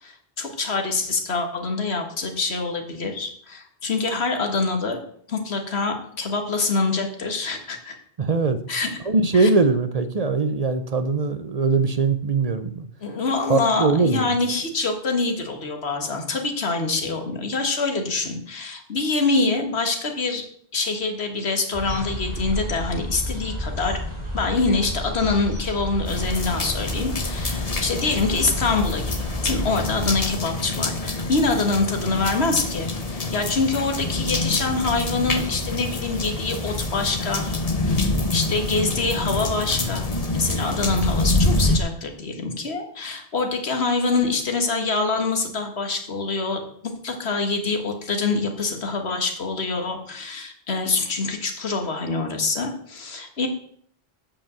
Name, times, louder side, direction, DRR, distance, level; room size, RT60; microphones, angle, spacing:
voice 1, 0.0-5.0 5.3-8.0 8.7-8.9 9.3-9.5 13.0-20.4 20.7-24.0 24.3-29.1 29.4-37.5 37.8-40.1 40.3-53.5, left 3 dB, 90° left, 4 dB, 1.8 m, -25 dB
voice 2, 8.2-8.6 9.0-12.9 13.5-14.3, right 4 dB, 45° right, 10 dB, 0.6 m, -21 dB
sound 1, 21.7-30.3, left 1 dB, 20° right, 3.3 m, -31 dB
sound 2, 26.0-41.8, left 2 dB, 40° left, 1.0 m, -26 dB
8.5 x 5.3 x 7.4 m, 0.63 s
omnidirectional pair, 1.0 m